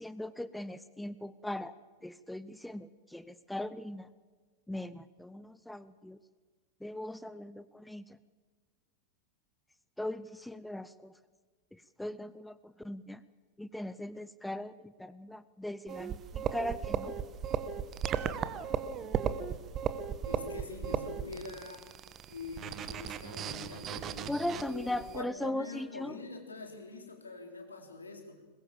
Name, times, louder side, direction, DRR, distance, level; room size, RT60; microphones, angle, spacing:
voice 1, 0.0-1.7 2.0-4.1 4.7-6.2 6.8-8.2 10.0-11.1 11.7-13.2 13.6-17.2 24.3-26.1, left 1 dB, 5° left, 16 dB, 0.7 m, -39 dB
sound 1, 15.9-25.2, right 8 dB, 30° right, 1.2 m, -36 dB
voice 2, 20.2-21.9 22.3-28.4, left 3 dB, 75° left, 4 dB, 3.8 m, -44 dB
21.5 x 21.0 x 7.3 m, 1.4 s
figure-of-eight pair, 90°, 0 cm